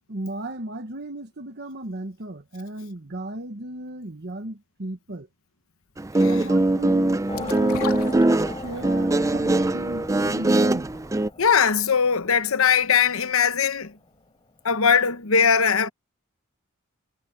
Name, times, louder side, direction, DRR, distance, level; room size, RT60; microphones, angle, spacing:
voice 1, 0.1-5.3 6.2-8.1 8.6-10.9, right 1 dB, 50° right, 1.3 m, -35 dB
Guitar, 6.0-11.3, right 2 dB, 15° right, 0.4 m, -22 dB
sound 1, 7.3-8.9 9.3-9.4, left 5 dB, 85° left, 3.0 m, -35 dB
sound 2, 7.3-14.1, left 2 dB, 25° left, 4.3 m, -40 dB
voice 2, 11.4-13.9 14.6-15.9, left 6 dB, 65° left, 1.0 m, -20 dB
head